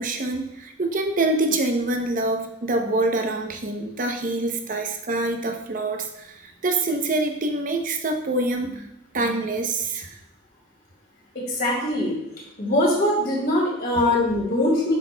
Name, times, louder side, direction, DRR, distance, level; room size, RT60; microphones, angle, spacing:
voice 1, 0.0-8.9 9.1-10.1, right 2 dB, 40° right, 4 dB, 0.7 m, -25 dB
voice 2, 11.3-12.1 12.6-14.9, left 1 dB, 50° left, -4 dB, 2.5 m, -22 dB
8.1 x 6.2 x 2.2 m, 0.85 s
head